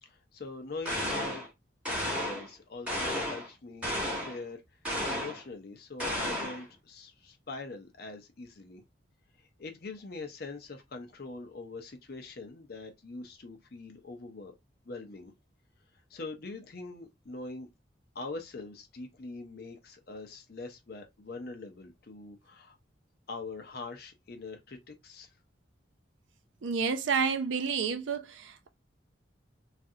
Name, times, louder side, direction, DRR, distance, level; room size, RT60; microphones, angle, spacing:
voice 1, 0.0-1.4 2.0-4.6 5.1-8.8 9.4-14.5 14.9-15.3 16.1-17.7 18.1-22.8 23.3-25.3, left 3 dB, 50° left, 0.6 m, -43 dB
sound 1, 0.8-1.5 1.8-2.5 2.9-3.5 3.8-4.4 4.8-5.4 6.0-6.6, equal, 5° right, 1.1 m, -33 dB
voice 2, 26.6-28.7, right 5 dB, 80° right, 0.5 m, -30 dB
3.1 x 2.5 x 2.7 m
head